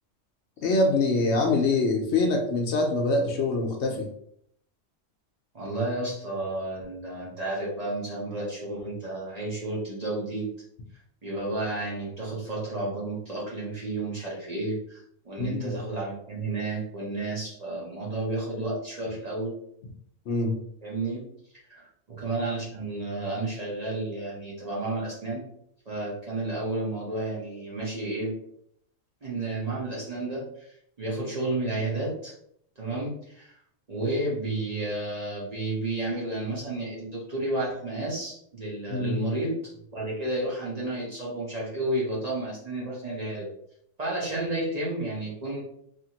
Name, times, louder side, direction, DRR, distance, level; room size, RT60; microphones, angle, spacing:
voice 1, 0.6-4.1 15.4-15.8 20.3-20.6 38.9-39.2, left 2 dB, 65° left, 2 dB, 0.8 m, -24 dB
voice 2, 5.5-10.5 11.2-19.6 20.8-21.3 21.7-21.8 22.1-25.5 25.9-28.3 29.2-32.3 32.8-33.5 33.9-39.6 39.9-43.5 44.0-45.6, right 2 dB, 40° right, -6 dB, 0.8 m, -31 dB
2.8 x 2.6 x 2.8 m, 0.69 s
omnidirectional pair, 1.3 m